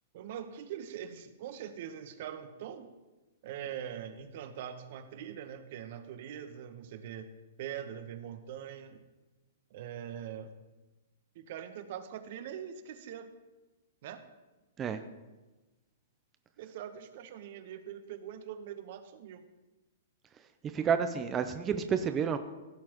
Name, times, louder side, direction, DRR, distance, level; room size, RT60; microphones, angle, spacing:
voice 1, 0.1-2.9 3.4-7.3 7.6-9.1 9.7-10.5 11.3-13.3 14.0-14.2 16.6-19.5, right 9 dB, 55° right, 10 dB, 1.0 m, -42 dB
voice 2, 20.7-22.4, right 7 dB, 25° right, 8 dB, 0.6 m, -30 dB
16.0 x 7.5 x 3.0 m, 1.1 s
hypercardioid pair, 120°, 0 cm